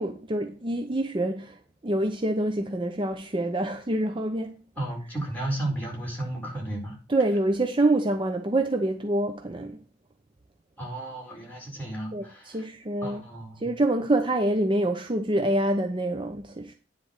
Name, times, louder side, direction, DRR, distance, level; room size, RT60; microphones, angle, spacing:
voice 1, 0.0-4.5 7.1-9.8 12.1-13.2 13.6-16.7, right 1 dB, 25° right, 0.7 m, -26 dB
voice 2, 4.8-7.0 10.8-12.6 13.0-13.7, right 1 dB, 10° left, 4.9 m, -33 dB
10.0 x 4.2 x 6.4 m
head